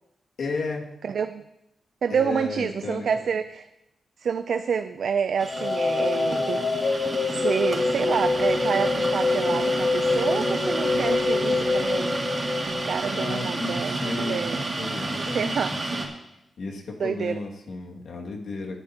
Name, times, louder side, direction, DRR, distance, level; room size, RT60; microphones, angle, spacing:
voice 1, 0.4-0.9 2.1-3.1 13.1-16.1 16.6-18.8, left 3 dB, 80° left, 0 dB, 2.1 m, -33 dB
voice 2, 1.0-1.4 2.0-3.7 4.2-6.7 7.3-12.2 12.6-14.6 15.2-15.8 17.0-17.4, right 6 dB, 75° right, 10 dB, 0.4 m, -28 dB
sound 1, 5.4-16.1, right 2 dB, 40° right, 2.4 m, -31 dB
sound 2, 5.5-13.4, left 3 dB, 55° left, 0.9 m, -25 dB
20.0 x 9.9 x 2.9 m, 0.88 s
cardioid pair, 85°, 0 cm